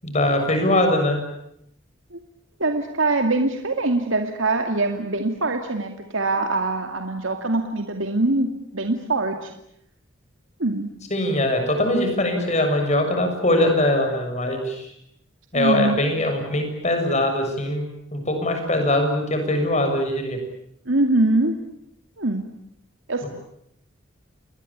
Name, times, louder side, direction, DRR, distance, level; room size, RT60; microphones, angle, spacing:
voice 1, 0.0-1.2 11.1-14.9 15.5-17.9 18.1-20.4 23.2-23.3, left 1 dB, 35° left, 5 dB, 7.0 m, -22 dB
voice 2, 2.6-9.5 10.6-10.9 15.5-16.0 20.9-21.5 22.2-22.4 23.1-23.3, right 2 dB, 75° right, 5 dB, 2.4 m, -23 dB
29.5 x 21.0 x 8.6 m, 0.76 s
head